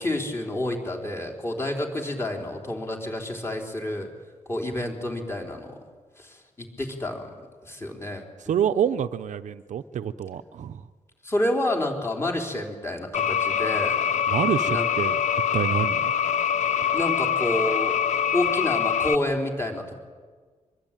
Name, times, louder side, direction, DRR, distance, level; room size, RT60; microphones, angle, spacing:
voice 1, 0.0-4.1 4.5-5.8 6.2-7.3 7.6-8.5 11.2-14.1 14.7-14.9 16.9-18.0 18.3-20.0, left 1 dB, 20° left, 2 dB, 4.1 m, -29 dB
voice 2, 8.5-10.8 14.3-15.2 15.5-16.1, right 9 dB, 70° right, 10 dB, 0.8 m, -27 dB
sound 1, 13.1-19.2, left 8 dB, 65° left, 0.7 m, -24 dB
24.0 x 23.0 x 9.1 m, 1.5 s
wide cardioid pair, 160°, 13 cm